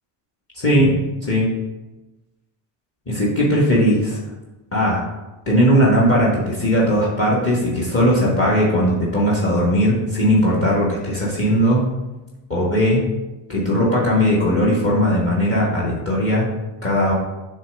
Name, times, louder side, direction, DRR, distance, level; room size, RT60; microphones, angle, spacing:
voice 1, 0.6-1.5 3.1-4.2 4.7-5.0 5.5-11.9 12.5-13.1 13.5-16.5 16.8-17.1, equal, 25° left, -4 dB, 1.5 m, -18 dB
7.3 x 3.4 x 5.2 m, 1.1 s
cardioid pair, 130°, 48 cm